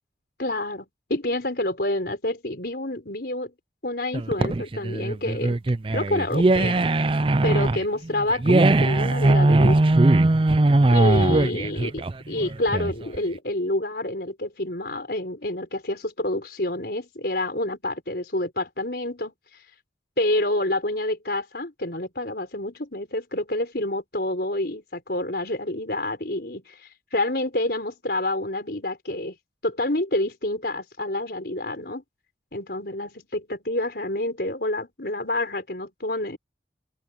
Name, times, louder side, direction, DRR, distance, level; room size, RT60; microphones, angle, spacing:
voice 1, 0.4-3.5 3.8-5.6 5.9-6.8 7.4-10.0 10.9-19.3 20.2-29.3 29.6-32.0 32.5-36.4, left 1 dB, 55° left, 5.0 m, -28 dB
sound 1, 4.1-13.2, right 2 dB, 30° right, 0.4 m, -20 dB
open air
head